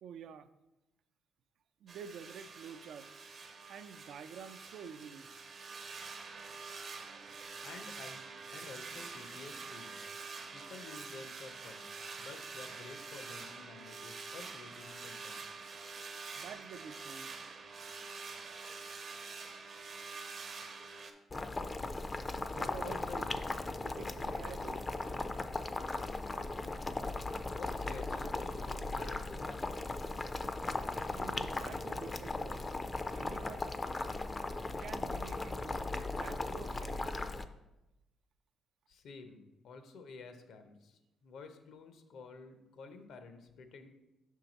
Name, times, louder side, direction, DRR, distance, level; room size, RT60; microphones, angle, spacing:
voice 1, 0.0-0.5 1.8-3.1 3.7-5.3 16.4-17.3 22.5-23.0 23.3-23.4 23.8-24.8 31.1-32.7 33.2-33.7 34.8-37.1, right 7 dB, 70° right, 11 dB, 0.3 m, -49 dB
sound 1, 1.9-21.1, right 4 dB, 50° right, 0.7 m, -46 dB
voice 2, 7.6-10.2 10.5-11.9 12.2-15.4 22.5-23.3 27.5-29.7 38.9-43.9, left 4 dB, 75° left, 8 dB, 0.7 m, -51 dB
Boiling, 21.3-37.4, left 2 dB, 25° left, 0.4 m, -38 dB
5.8 x 4.6 x 4.0 m, 0.95 s
cardioid pair, 90°, 0 cm